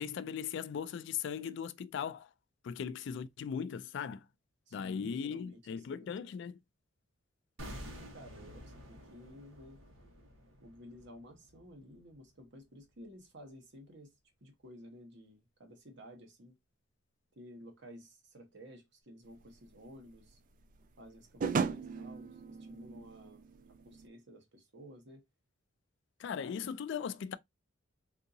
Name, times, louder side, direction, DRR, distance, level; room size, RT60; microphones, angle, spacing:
voice 1, 0.0-2.3 2.6-4.3 4.7-6.6 26.2-27.4, left 7 dB, 60° left, 0.3 m, -38 dB
voice 2, 4.7-6.1 7.8-9.8 10.6-14.1 14.4-16.5 17.3-20.4 21.0-23.4 23.8-25.2, equal, 60° right, 1.1 m, -53 dB
sound 1, 7.6-12.6 12.9-13.0, equal, 80° right, 1.2 m, -50 dB
sound 2, 19.4-24.1, right 5 dB, 40° right, 0.3 m, -37 dB
3.6 x 2.7 x 2.7 m
head